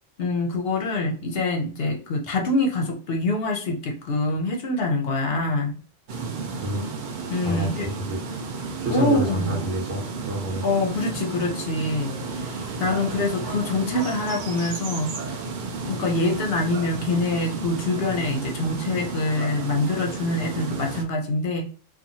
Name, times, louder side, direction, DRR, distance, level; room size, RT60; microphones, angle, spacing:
voice 1, 0.2-5.8 7.3-7.9 8.9-9.6 10.6-15.4 15.9-21.7, left 2 dB, 60° left, 2 dB, 0.7 m, -25 dB
sound 1, 6.1-21.0, right 4 dB, 60° right, 0.5 m, -33 dB
voice 2, 6.6-6.9 7.4-8.2 8.8-10.6, right 1 dB, 85° right, -3 dB, 1.1 m, -28 dB
2.9 x 2.3 x 2.6 m, 0.39 s
omnidirectional pair, 1.3 m